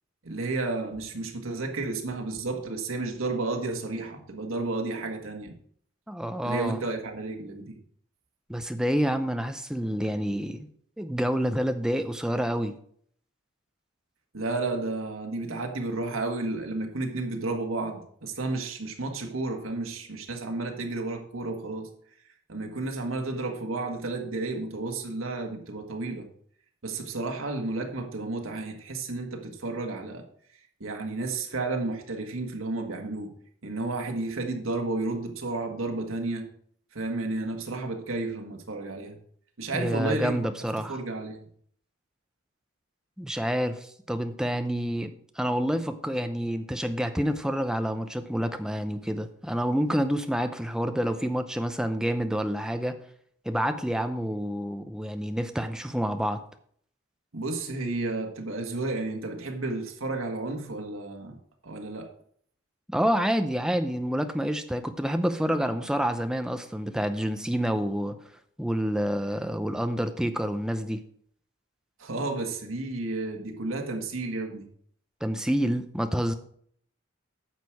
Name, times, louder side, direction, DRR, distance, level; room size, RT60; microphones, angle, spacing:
voice 1, 0.2-5.5 6.4-7.8 14.3-21.9 22.5-26.3 26.8-30.2 30.8-33.3 33.6-36.5 36.9-39.2 39.6-40.4 40.9-41.4 57.3-61.4 61.6-62.1 72.0-74.7, right 2 dB, 85° right, 3 dB, 1.6 m, -32 dB
voice 2, 6.1-6.8 8.5-10.7 11.0-12.7 39.7-41.0 43.2-53.0 53.4-56.4 62.9-68.2 68.6-71.0 75.2-76.3, equal, 5° right, 8 dB, 0.6 m, -28 dB
9.5 x 6.7 x 4.6 m, 0.62 s
head